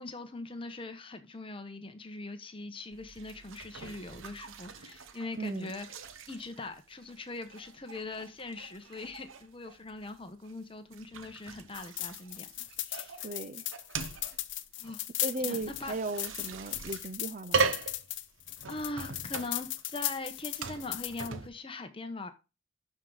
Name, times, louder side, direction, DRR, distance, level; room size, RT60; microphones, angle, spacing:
voice 1, 0.0-5.9 6.3-12.5 12.8-13.2 14.8-15.1 15.5-15.9 18.7-22.3, left 2 dB, 25° left, 1.0 m, -41 dB
sound 1, 2.9-21.5, right 4 dB, 80° right, 0.9 m, -40 dB
voice 2, 5.3-5.7 13.2-13.6 15.2-17.7, right 3 dB, 40° right, 0.5 m, -36 dB
sound 2, 11.7-21.3, left 15 dB, 65° left, 0.7 m, -37 dB
12.0 x 4.9 x 3.9 m
head